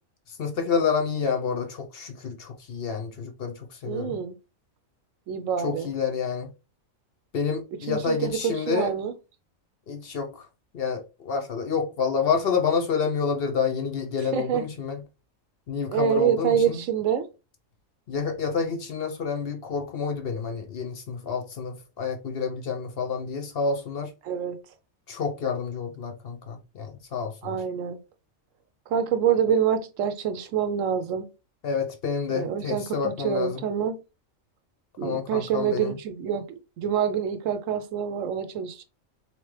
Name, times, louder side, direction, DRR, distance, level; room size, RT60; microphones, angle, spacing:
voice 1, 0.3-4.2 5.6-6.5 7.3-8.9 9.9-10.5 10.7-15.0 15.7-16.8 18.1-24.1 25.1-27.6 31.6-33.6 35.0-36.0, left 5 dB, 55° left, 0.8 m, -29 dB
voice 2, 3.9-4.3 5.3-5.9 7.9-9.1 14.3-14.6 15.9-17.3 24.2-24.6 27.4-28.0 28.9-31.3 32.3-34.0 35.0-38.8, right 8 dB, 75° right, 1.0 m, -26 dB
3.6 x 3.0 x 3.2 m
omnidirectional pair, 1.4 m